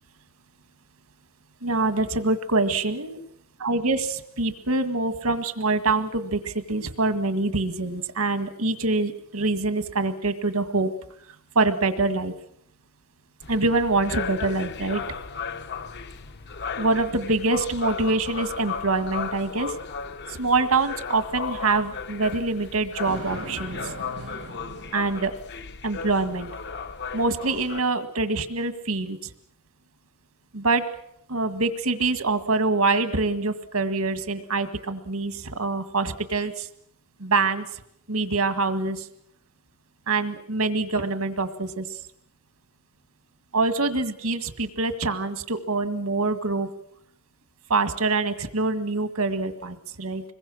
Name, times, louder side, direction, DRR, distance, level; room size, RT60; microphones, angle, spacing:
voice 1, 1.6-3.2 3.6-10.9 11.6-12.3 13.5-15.0 16.8-19.7 20.3-23.9 24.9-25.3 25.8-26.5 27.1-29.2 30.5-30.8 31.3-36.7 37.2-37.7 38.1-39.1 40.1-41.9 43.5-46.7 47.7-50.2, right 3 dB, 80° right, 9 dB, 1.9 m, -25 dB
sound 1, 13.4-27.8, left 5 dB, 50° left, 0.8 m, -35 dB
Thunder, 23.1-25.6, right 2 dB, 65° right, 1.2 m, -39 dB
26.0 x 21.5 x 6.4 m, 0.74 s
head